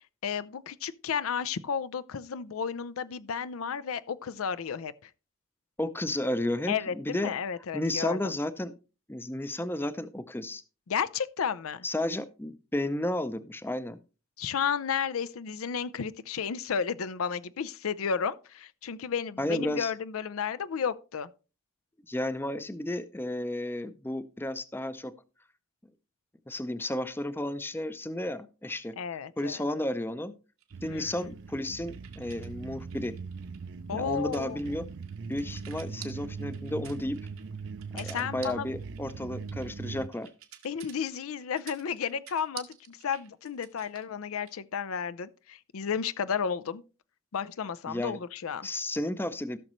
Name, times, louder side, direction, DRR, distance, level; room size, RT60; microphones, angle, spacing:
voice 1, 0.2-5.1 6.7-8.3 10.9-11.8 14.4-21.3 29.0-29.6 30.9-31.1 33.9-34.6 38.0-38.7 40.6-46.8 47.3-48.7, left 7 dB, 80° left, 0.5 m, -32 dB
voice 2, 5.8-7.3 7.7-8.7 9.1-10.6 11.8-14.0 19.4-19.9 22.1-25.1 26.5-28.9 29.4-30.3 30.8-33.1 33.9-34.9 35.3-37.2 38.0-40.3 47.9-48.2 48.6-49.6, left 1 dB, 10° left, 0.5 m, -32 dB
sound 1, 30.6-32.5 32.8-44.6, right 11 dB, 85° right, 1.5 m, -50 dB
sound 2, 30.7-40.1, right 5 dB, 55° right, 0.5 m, -41 dB
16.0 x 6.4 x 3.1 m
head